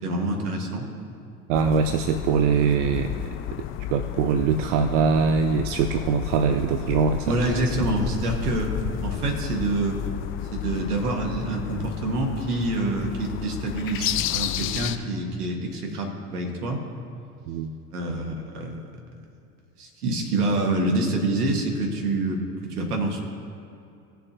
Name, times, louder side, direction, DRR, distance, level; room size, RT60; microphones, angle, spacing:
voice 1, 0.0-0.9 7.3-8.7 9.0-10.0 10.5-16.8 17.9-18.8 19.8-23.2, right 2 dB, 70° right, 2 dB, 2.0 m, -26 dB
sound 1, 1.5-15.0, left 11 dB, 30° left, 0.4 m, -32 dB
voice 2, 1.5-3.3 3.9-7.3 17.5-17.7, right 6 dB, 55° right, 8 dB, 0.6 m, -22 dB
18.5 x 6.8 x 3.0 m, 2.7 s
figure-of-eight pair, 75°, 47 cm